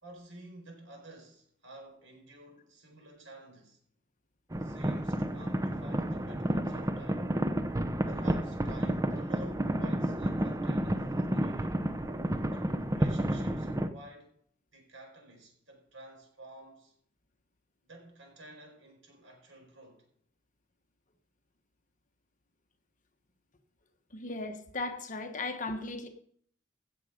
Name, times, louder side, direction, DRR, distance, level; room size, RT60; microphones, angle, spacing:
voice 1, 0.0-3.8 4.6-7.3 8.0-11.9 12.5-14.3 14.7-16.9 17.8-20.0, right 1 dB, 75° right, 4.6 m, -51 dB
sound 1, 4.5-13.9, right 1 dB, 15° right, 0.7 m, -31 dB
voice 2, 24.1-26.1, left 2 dB, 40° left, 1.3 m, -36 dB
16.5 x 7.1 x 5.1 m
head